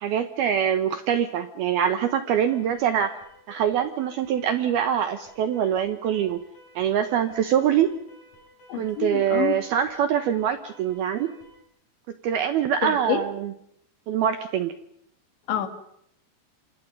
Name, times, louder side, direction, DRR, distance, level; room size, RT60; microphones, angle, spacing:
voice 1, 0.0-3.1 3.5-6.4 6.8-7.9 8.7-11.3 12.2-13.5 14.1-14.7, right 9 dB, 75° right, 10 dB, 2.3 m, -24 dB
Alarm, 2.4-11.7, equal, 35° left, 8.7 m, -54 dB
voice 2, 8.7-9.6 12.8-13.3 15.5-15.7, left 10 dB, 65° left, 9 dB, 4.2 m, -27 dB
26.5 x 26.5 x 5.3 m, 0.73 s
omnidirectional pair, 5.9 m